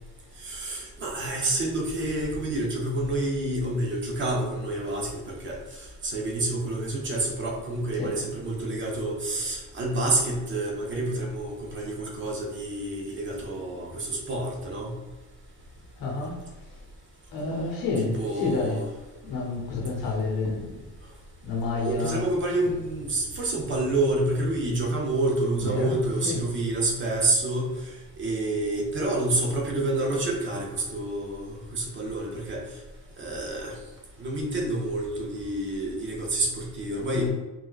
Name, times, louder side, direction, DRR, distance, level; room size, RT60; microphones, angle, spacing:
voice 1, 0.4-15.0 18.0-18.8 21.8-32.6 33.2-33.8 34.2-37.3, right 2 dB, 35° right, -2 dB, 0.5 m, -28 dB
voice 2, 16.0-16.4 17.3-18.8 19.2-20.8 21.4-22.3 25.6-26.4 37.1-37.3, left 3 dB, 70° left, 0 dB, 0.8 m, -29 dB
3.3 x 2.3 x 2.3 m, 1.2 s
cardioid pair, 175°, 35 cm